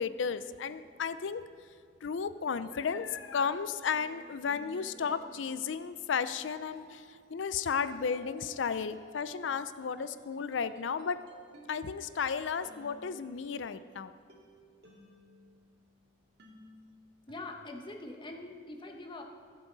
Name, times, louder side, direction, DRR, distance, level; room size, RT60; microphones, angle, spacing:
voice 1, 0.0-1.4 2.0-11.2 11.7-14.1, left 6 dB, 85° left, 13 dB, 0.5 m, -34 dB
sound 1, 2.5-15.9 16.4-17.6, equal, 60° right, 2.1 m, -56 dB
voice 2, 17.3-19.2, left 2 dB, 25° left, 2 dB, 1.1 m, -43 dB
20.0 x 7.6 x 4.0 m, 2.2 s
head